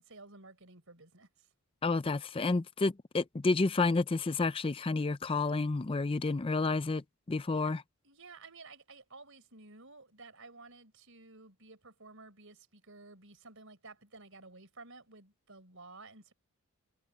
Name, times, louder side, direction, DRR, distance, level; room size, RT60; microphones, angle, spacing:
voice 1, 0.0-1.5 7.5-7.7 8.0-16.3, right 3 dB, 60° right, 5.3 m, -53 dB
voice 2, 1.8-7.8, left 3 dB, 25° left, 0.4 m, -30 dB
head